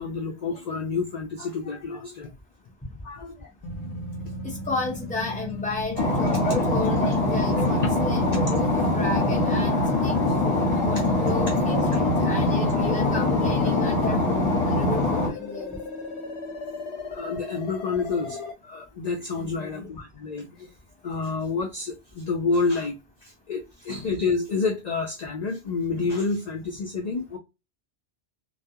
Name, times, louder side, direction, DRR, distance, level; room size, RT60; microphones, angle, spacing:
voice 1, 0.0-2.3 3.0-3.5 3.8-4.0 6.3-6.6 9.8-10.2 17.1-20.7 21.0-22.9 23.2-27.4, left 4 dB, 55° left, 0.5 m, -29 dB
sound 1, 3.6-18.5, left 2 dB, 75° left, 0.9 m, -36 dB
voice 2, 4.4-6.3 6.7-10.1 10.4-15.8, left 2 dB, 10° left, 0.7 m, -34 dB
sound 2, 6.0-15.3, left 2 dB, 35° left, 1.0 m, -23 dB
2.3 x 2.2 x 2.6 m
omnidirectional pair, 1.2 m